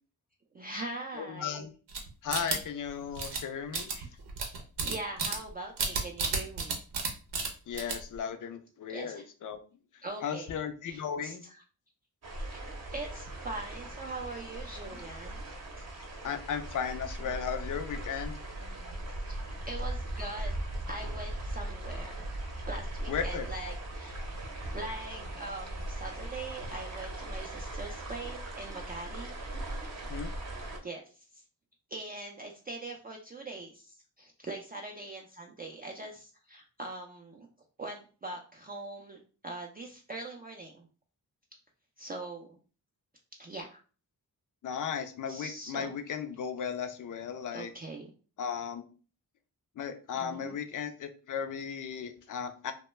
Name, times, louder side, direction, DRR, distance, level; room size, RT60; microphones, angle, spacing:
voice 1, 0.5-1.7 3.1-3.2 3.9-4.1 4.8-6.8 8.9-9.3 10.0-10.6 10.9-11.6 12.7-15.4 15.8-15.9 19.3-20.5 20.9-22.2 22.7-24.2 24.7-29.3 30.8-31.4 31.9-37.5 37.8-40.9 42.0-42.6 43.4-43.8 45.3-45.9 47.5-48.1 50.1-50.5, right 2 dB, 25° right, 1 dB, 0.3 m, -42 dB
voice 2, 1.2-1.7 2.2-3.9 7.7-9.6 10.2-11.4 16.2-18.4 23.1-23.5 30.0-30.3 44.6-47.7 48.4-48.8 49.8-52.7, left 7 dB, 55° left, 9 dB, 0.5 m, -36 dB
sound 1, 1.9-2.9 3.2-3.4 3.7-5.5 5.8-7.1 7.3-7.5 7.7-8.2, right 4 dB, 90° right, 0.7 m, -31 dB
sound 2, 12.2-30.8, right 1 dB, 40° right, 0.7 m, -39 dB
2.1 x 2.1 x 3.1 m, 0.38 s
cardioid pair, 70°, 39 cm